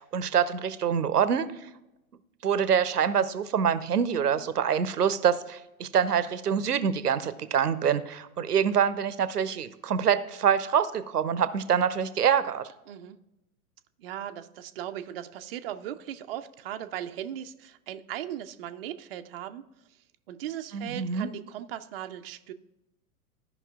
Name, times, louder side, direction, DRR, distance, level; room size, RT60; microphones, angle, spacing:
voice 1, 0.0-1.5 2.4-12.7 20.7-21.3, right 8 dB, 85° right, 15 dB, 0.6 m, -25 dB
voice 2, 12.9-13.2 14.0-19.6 20.3-22.5, right 11 dB, 40° right, 8 dB, 0.4 m, -38 dB
14.0 x 5.4 x 2.4 m, 0.93 s
figure-of-eight pair, 105°, 46 cm